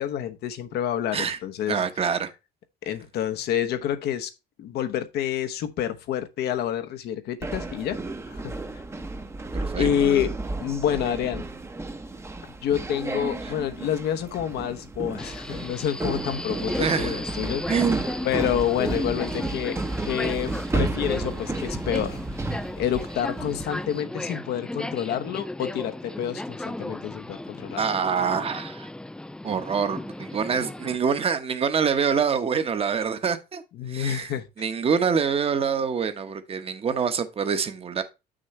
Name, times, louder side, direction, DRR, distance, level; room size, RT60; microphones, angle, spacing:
voice 1, 0.0-1.8 2.8-4.3 4.6-8.0 8.3-8.5 9.8-11.4 12.6-17.6 18.2-19.8 20.1-22.2 22.8-27.8 33.8-34.5, left 10 dB, 75° left, 1.0 m, -28 dB
voice 2, 1.7-2.3 9.6-10.2 13.4-13.5 16.8-17.2 17.7-18.1 27.8-28.9 29.4-33.6 33.9-38.0, right 6 dB, 35° right, 1.1 m, -26 dB
sound 1, 7.4-23.9, right 2 dB, 15° right, 0.8 m, -32 dB
Subway metro underground, 15.2-31.0, left 1 dB, 5° left, 0.3 m, -35 dB
7.5 x 6.3 x 3.2 m
cardioid pair, 110°, 17 cm